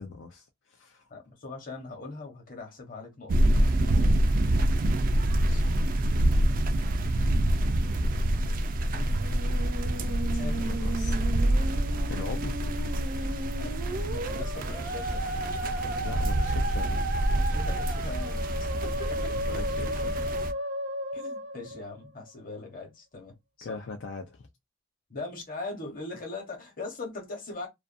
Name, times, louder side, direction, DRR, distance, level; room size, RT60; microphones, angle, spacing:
voice 1, 0.0-1.0 3.3-3.6 9.8-11.2 12.1-12.7 16.0-17.1 19.5-20.3 20.6-20.7 23.6-24.5, left 4 dB, 80° left, 0.4 m, -41 dB
voice 2, 1.1-4.7 5.5-5.6 8.9-9.1 10.4-10.6 13.6-15.3 17.3-20.0 21.1-23.8 25.1-27.7, left 3 dB, 50° left, 1.0 m, -41 dB
sound 1, 3.3-20.5, right 1 dB, 50° right, 0.4 m, -26 dB
Musical instrument, 8.9-22.3, right 1 dB, 85° right, 0.8 m, -35 dB
sound 2, 14.6-20.5, equal, 20° left, 0.5 m, -42 dB
2.4 x 2.3 x 2.5 m
head